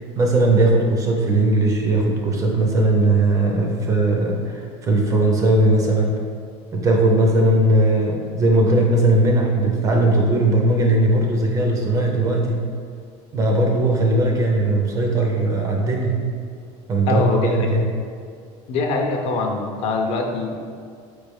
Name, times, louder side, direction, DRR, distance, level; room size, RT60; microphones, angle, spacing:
voice 1, 0.0-6.2 6.7-12.7 13.3-16.2 16.9-17.9, right 2 dB, 20° right, 0 dB, 0.4 m, -18 dB
voice 2, 17.1-17.6 18.7-20.6, left 3 dB, 40° left, 3 dB, 0.4 m, -23 dB
4.4 x 3.2 x 3.4 m, 2.2 s
cardioid pair, 165°, 15 cm